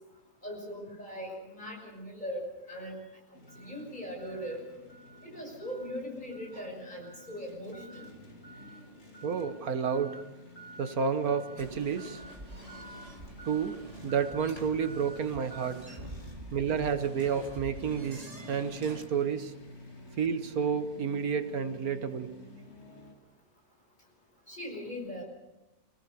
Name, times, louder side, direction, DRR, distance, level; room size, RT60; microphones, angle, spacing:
voice 1, 0.4-3.0 3.6-4.6 5.2-8.1 24.5-25.2, equal, 30° left, 0 dB, 6.4 m, -40 dB
sound 1, 3.3-23.1, right 1 dB, 45° left, 3.1 m, -49 dB
voice 2, 9.2-10.2 10.8-12.2 13.5-13.8 14.0-16.0 16.5-19.5 20.2-22.3, right 6 dB, 75° right, 9 dB, 1.6 m, -30 dB
sound 2, 11.6-19.1, right 1 dB, 25° right, 2.6 m, -47 dB
25.5 x 18.0 x 6.8 m, 1.0 s
omnidirectional pair, 1.6 m